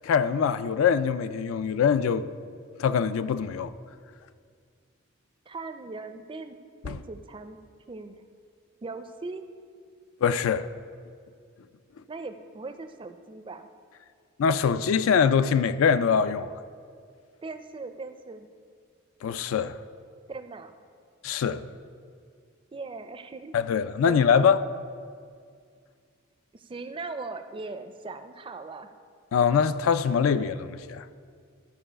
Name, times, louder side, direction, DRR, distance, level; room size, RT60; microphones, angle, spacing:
voice 1, 0.0-2.3 2.8-3.7 6.9-7.0 10.2-10.7 14.4-16.5 19.2-19.8 21.2-21.6 23.5-24.7 29.3-31.1, left 6 dB, 80° left, 0.3 m, -23 dB
voice 2, 5.5-6.6 6.8-7.6 7.9-8.1 8.8-9.4 12.1-13.7 17.4-18.5 20.3-20.8 22.7-23.5 24.1-24.3 26.5-28.9, right 3 dB, 25° right, 0.4 m, -39 dB
12.5 x 4.7 x 5.0 m
head